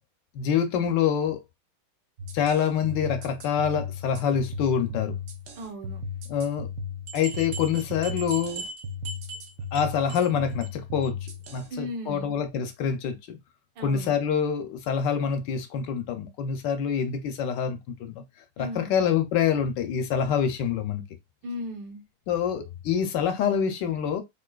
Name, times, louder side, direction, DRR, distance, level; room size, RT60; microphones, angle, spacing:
voice 1, 0.3-1.4 2.3-5.2 6.3-6.7 7.1-8.6 9.7-13.4 13.8-18.2 18.6-21.0 22.3-24.2, left 7 dB, 75° left, 1.2 m, -26 dB
sound 1, 2.2-11.7, left 4 dB, 85° right, 0.6 m, -36 dB
voice 2, 5.6-6.0 11.7-12.4 13.8-14.1 18.6-19.0 21.4-22.0, left 1 dB, 65° right, 1.7 m, -36 dB
sound 2, 7.1-9.8 10.1-10.3 10.6-10.7 11.0-11.1 11.4-11.5, right 5 dB, 45° right, 1.3 m, -39 dB
3.8 x 2.8 x 2.3 m
omnidirectional pair, 2.1 m